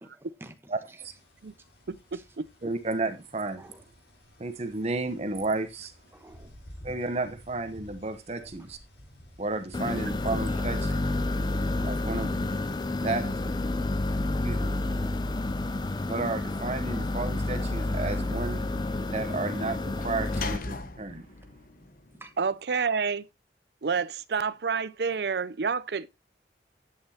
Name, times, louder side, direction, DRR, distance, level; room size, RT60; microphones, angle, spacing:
voice 1, 0.0-1.0 2.1-2.2 3.6-3.8 6.1-6.6 6.9-7.0 8.4-8.5 10.5-10.7 11.4-11.5 14.9-15.4 22.1-22.3, right 1 dB, 15° right, 1.0 m, -51 dB
voice 2, 0.7-1.1 2.6-3.6 4.4-5.9 6.8-8.8 9.4-10.9 11.8-12.4 12.8-13.3 14.4-14.7 16.1-18.6 19.1-21.2, right 3 dB, 40° right, 0.9 m, -32 dB
sound 1, 1.0-20.0, equal, 70° left, 4.4 m, -53 dB
voice 3, 1.9-2.5 22.4-23.3 23.8-26.1, right 5 dB, 65° right, 0.5 m, -29 dB
sound 2, 9.7-20.6, left 2 dB, 25° left, 0.5 m, -29 dB
Sliding door / Slam, 17.2-22.5, left 3 dB, 55° left, 1.0 m, -43 dB
10.5 x 8.5 x 2.8 m
head